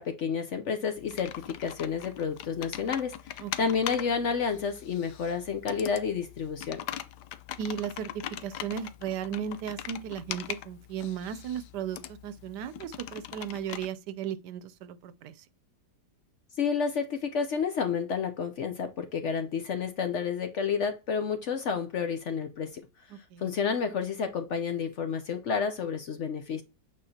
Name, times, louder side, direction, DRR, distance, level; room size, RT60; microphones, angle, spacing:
voice 1, 0.0-6.8 16.6-22.8 23.4-26.6, left 6 dB, 60° left, 0.8 m, -30 dB
Computer keyboard, 1.0-13.9, left 12 dB, 80° left, 1.2 m, -41 dB
voice 2, 3.4-3.8 7.6-8.1 8.4-15.3 23.1-23.5, right 8 dB, 75° right, 1.2 m, -36 dB
8.5 x 4.7 x 2.7 m
omnidirectional pair, 1.8 m